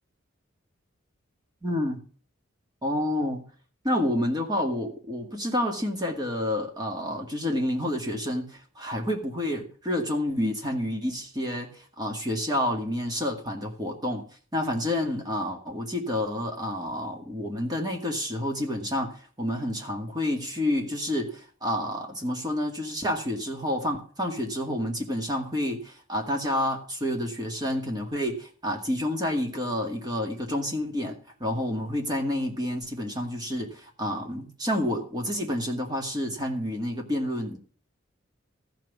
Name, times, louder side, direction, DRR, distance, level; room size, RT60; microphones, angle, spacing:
voice 1, 1.6-2.0 2.8-3.5 3.8-14.2 14.5-37.6, left 1 dB, 20° right, 2 dB, 2.2 m, -29 dB
14.5 x 6.2 x 7.2 m, 0.42 s
head